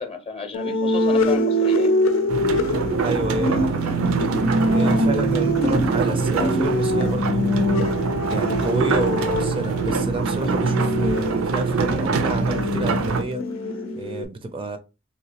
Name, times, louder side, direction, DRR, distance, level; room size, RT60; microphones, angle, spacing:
voice 1, 0.0-1.9 5.3-5.4, left 4 dB, 30° left, 0.7 m, -33 dB
sound 1, 0.5-14.2, equal, 70° left, 0.6 m, -24 dB
sound 2, 2.3-13.2, right 4 dB, 85° right, 0.4 m, -24 dB
voice 2, 3.0-4.0 4.7-7.7 8.3-13.4 14.0-14.8, right 2 dB, 25° right, 0.4 m, -29 dB
3.5 x 2.8 x 2.8 m
head